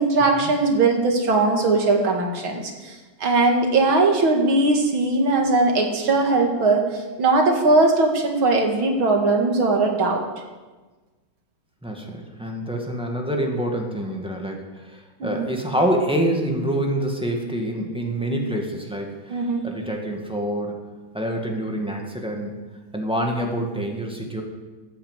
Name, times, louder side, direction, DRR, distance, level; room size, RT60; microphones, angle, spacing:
voice 1, 0.0-10.2 15.2-15.4 19.3-19.6, right 3 dB, 75° right, 2 dB, 2.8 m, -20 dB
voice 2, 11.8-20.8 21.1-22.6 22.9-24.4, right 1 dB, 5° right, 0 dB, 1.8 m, -26 dB
13.5 x 8.7 x 8.2 m, 1.3 s
omnidirectional pair, 2.3 m